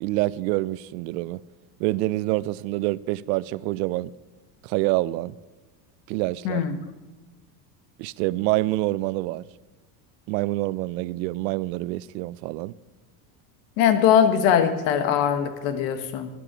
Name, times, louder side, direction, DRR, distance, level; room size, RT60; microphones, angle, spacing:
voice 1, 0.0-1.4 1.8-4.1 4.6-5.4 6.1-6.6 8.0-9.5 10.3-12.7, right 19 dB, 80° right, 0.6 m, -26 dB
voice 2, 13.8-16.3, left 8 dB, 60° left, 1.4 m, -21 dB
12.0 x 9.9 x 6.1 m
supercardioid pair, 140°, 50 cm